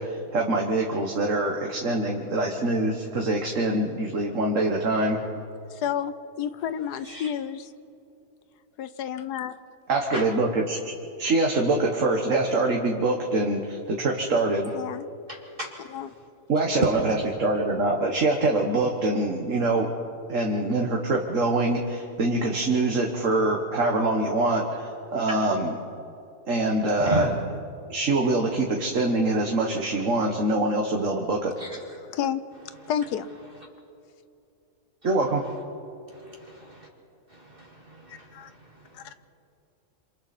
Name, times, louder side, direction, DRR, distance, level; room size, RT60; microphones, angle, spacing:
voice 1, 0.0-5.2 9.9-10.8 11.2-14.7 16.5-19.9 20.3-25.8 26.5-27.3 27.9-31.5 35.0-35.4, right 2 dB, 55° right, 0 dB, 1.8 m, -24 dB
voice 2, 5.7-7.7 8.8-9.6 14.7-15.1 15.9-16.1 32.0-32.4 32.9-33.3 38.1-38.5, left 9 dB, 85° left, 12 dB, 1.4 m, -30 dB
voice 3, 15.3-15.7 27.0-27.3 31.6-31.8 36.1-36.9 37.3-38.3 38.6-38.7, right 2 dB, 35° right, -1 dB, 2.2 m, -34 dB
28.0 x 27.0 x 4.3 m, 2.7 s
omnidirectional pair, 1.7 m